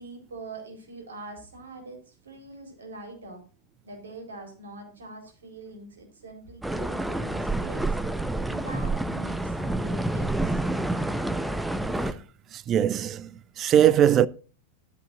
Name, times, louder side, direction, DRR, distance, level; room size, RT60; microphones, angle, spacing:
voice 1, 0.0-3.4 3.8-8.0 8.5-10.9, right 2 dB, 70° right, 4.2 m, -43 dB
sound 1, 6.6-12.1, right 2 dB, 5° right, 0.8 m, -28 dB
voice 2, 12.7-13.3 13.6-14.3, right 10 dB, 30° right, 0.5 m, -20 dB
13.0 x 12.5 x 2.6 m
figure-of-eight pair, 90°, 0 cm